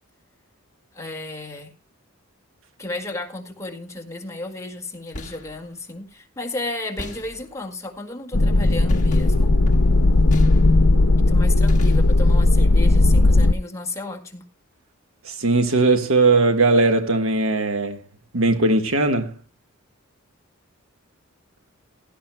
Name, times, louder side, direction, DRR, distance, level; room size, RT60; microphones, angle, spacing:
voice 1, 0.9-1.7 2.8-9.6 11.2-14.4, left 2 dB, 15° left, 1.8 m, -33 dB
sound 1, 4.9-5.6 7.0-7.7 8.9-11.0 11.7-12.4, left 1 dB, 35° left, 1.4 m, -36 dB
sound 2, 8.3-13.5, left 2 dB, 75° left, 0.8 m, -16 dB
voice 2, 15.2-18.0 18.3-19.4, right 3 dB, 70° right, 1.4 m, -19 dB
16.5 x 12.5 x 2.2 m
head